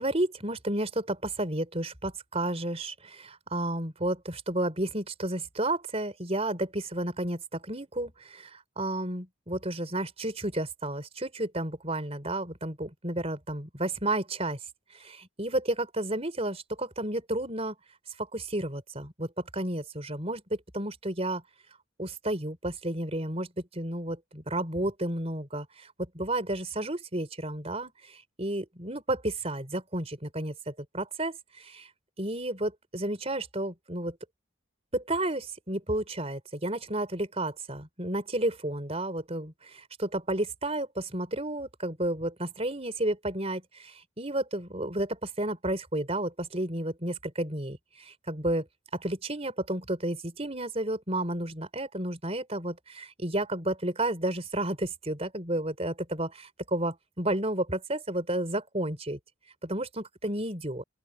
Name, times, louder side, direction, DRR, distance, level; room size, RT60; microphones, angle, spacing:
voice 1, 0.0-14.6 14.9-17.7 18.2-21.4 22.0-31.9 32.2-34.2 34.9-48.6 48.9-59.2 59.6-60.8, right 1 dB, 30° right, 4.5 m, -32 dB
open air
head